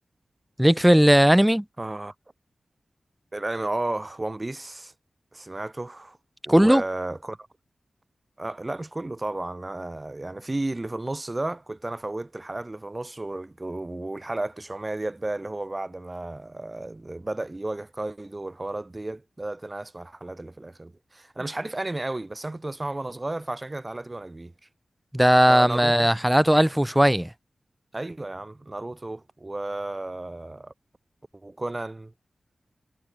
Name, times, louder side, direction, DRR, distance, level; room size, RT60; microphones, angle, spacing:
voice 1, 0.6-1.6 6.5-6.8 25.1-27.3, equal, 5° right, 0.3 m, -18 dB
voice 2, 1.8-2.1 3.3-4.9 5.3-6.2 6.4-7.4 8.4-24.5 25.4-26.1 27.9-30.7 31.4-32.1, right 2 dB, 25° right, 3.1 m, -33 dB
wide cardioid pair, 100°, 0 cm